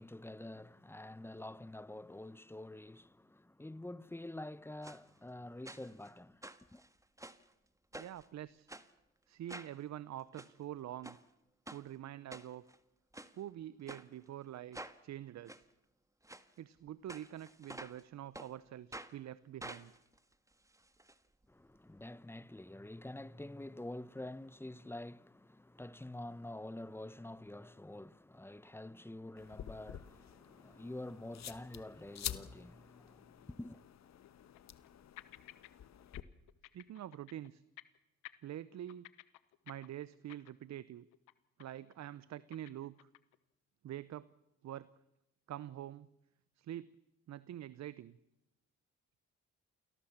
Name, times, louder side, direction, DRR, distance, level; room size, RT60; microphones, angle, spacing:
voice 1, 0.0-6.4 6.7-6.8 21.5-33.8, left 1 dB, 10° left, 0.7 m, -47 dB
sound 1, 4.8-5.0 5.7-6.1 6.4-7.5 7.9-8.3 8.7-8.9 9.5-9.8 10.2-10.5 11.0-11.2 11.7-11.8 12.3-12.8 13.1-13.3 13.9-14.0 14.7-15.0 15.5-15.6 16.2-16.4 17.1-18.0 18.3-18.5 18.9-19.1 19.6-21.1 21.4-21.5 21.8-21.9, right 1 dB, 10° right, 1.6 m, -49 dB
voice 2, 8.0-8.7 9.3-11.2 11.7-12.6 13.4-15.6 16.6-19.9 36.7-37.6 38.4-39.1 39.7-41.0 41.6-43.1 43.8-44.3 44.6-44.9 45.5-46.1 46.6-46.9 47.3-48.2, right 12 dB, 60° right, 0.8 m, -46 dB
sound 2, 29.0-29.2 29.5-29.6 30.2-30.3 33.5-33.6 34.2-34.9 35.2-35.7 36.0-36.2 36.5-37.5 37.8-38.0 38.2-40.8 41.1-41.3 41.6-41.9 42.2-43.4, left 18 dB, 90° left, 1.0 m, -55 dB
sound 3, 29.4-36.2, left 10 dB, 60° left, 1.2 m, -48 dB
28.5 x 18.5 x 7.3 m
supercardioid pair, 60°, 31 cm